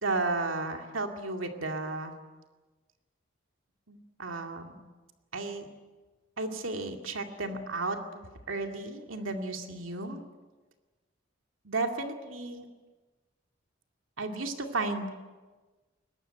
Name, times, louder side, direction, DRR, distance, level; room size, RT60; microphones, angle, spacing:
voice 1, 0.0-2.1 3.9-4.8 5.3-5.7 6.4-10.2 11.6-12.7 14.2-15.1, right 3 dB, 90° right, 4 dB, 2.4 m, -33 dB
22.5 x 19.5 x 9.2 m, 1.3 s
head